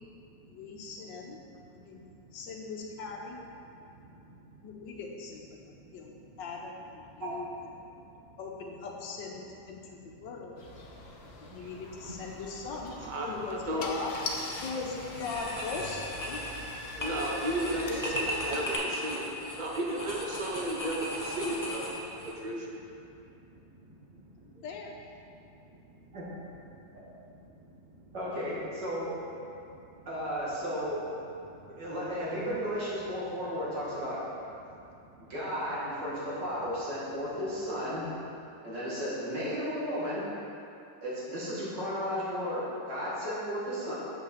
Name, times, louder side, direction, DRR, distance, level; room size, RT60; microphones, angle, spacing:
voice 1, 0.5-1.4 1.7-2.0 2.3-3.4 4.6-5.6 5.9-7.5 8.4-10.6 11.4-12.9 13.3-14.2 14.6-16.4 17.6-18.6 24.6-24.9, left 4 dB, 85° left, 0 dB, 1.6 m, -40 dB
sound 1, 10.6-18.5, left 2 dB, 45° left, 0.9 m, -49 dB
Car / Engine starting, 12.7-12.9 13.5-13.6 13.8-18.7, left 2 dB, 60° left, 0.5 m, -40 dB
voice 2, 13.0-13.9 16.9-22.7 24.6-24.7, right 1 dB, 35° right, -1 dB, 0.9 m, -34 dB
sound 2, 14.4-14.7 15.1-22.3, equal, 15° left, 0.6 m, -37 dB
voice 3, 28.1-29.1 30.1-31.0 31.7-34.2 35.3-38.1 38.6-40.2 41.0-43.9, equal, 70° right, -8 dB, 2.9 m, -34 dB
7.0 x 5.7 x 6.5 m, 2.7 s
omnidirectional pair, 1.9 m